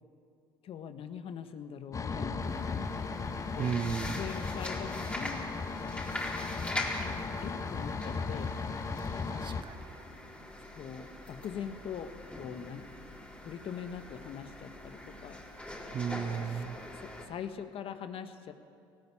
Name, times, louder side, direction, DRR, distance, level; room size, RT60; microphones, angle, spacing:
voice 1, 0.6-2.9 3.6-3.8 4.1-5.5 7.0-7.1 7.4-8.5 10.7-12.9 13.4-15.8 16.3-18.5, left 8 dB, 55° left, 9 dB, 1.4 m, -43 dB
sound 1, 1.9-9.6, left 4 dB, 30° left, 1.1 m, -36 dB
sound 2, 2.4-17.3, left 1 dB, 10° left, 4.2 m, -42 dB
voice 2, 3.6-4.2 9.0-10.0 15.9-16.8, right 7 dB, 45° right, 12 dB, 0.9 m, -35 dB
19.0 x 16.5 x 8.7 m, 2.4 s
hypercardioid pair, 70°, 11 cm